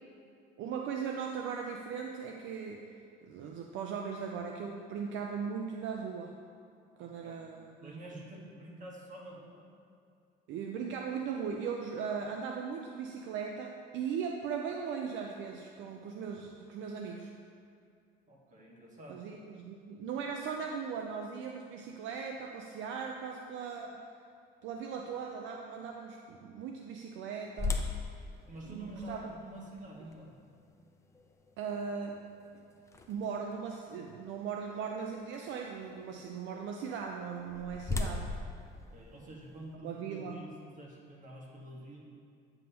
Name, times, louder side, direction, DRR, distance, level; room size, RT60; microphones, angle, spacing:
voice 1, 0.6-2.8 3.2-6.4 7.0-7.9 10.5-17.3 19.1-24.1 24.6-27.8 28.6-29.3 31.6-32.2 33.1-38.4 39.8-40.5, right 6 dB, 75° right, 2 dB, 0.5 m, -38 dB
voice 2, 7.0-7.4 7.8-9.7 18.3-19.2 28.5-30.3 38.7-42.0, right 1 dB, 40° right, -2 dB, 1.4 m, -47 dB
sound 1, 27.6-33.5 34.1-34.2 34.8-35.0 37.1-39.7, left 3 dB, 15° left, 0.5 m, -39 dB
8.9 x 5.5 x 2.8 m, 2.4 s
cardioid pair, 105°, 20 cm